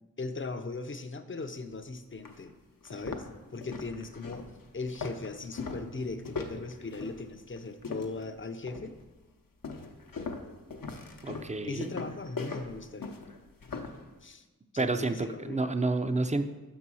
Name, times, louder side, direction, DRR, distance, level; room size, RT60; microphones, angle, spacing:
voice 1, 0.2-2.5 2.8-4.5 4.7-9.0 11.7-13.2 14.2-14.4 14.7-15.7, left 3 dB, 35° left, 9 dB, 0.5 m, -38 dB
sound 1, 1.7-1.8 2.2-2.4 2.8-8.3 8.7-9.1 9.6-14.0, left 4 dB, 65° left, 0.8 m, -40 dB
voice 2, 11.2-11.9 14.8-16.4, right 3 dB, 20° right, 9 dB, 0.5 m, -29 dB
6.1 x 4.2 x 6.1 m, 1.2 s
wide cardioid pair, 40°, 36 cm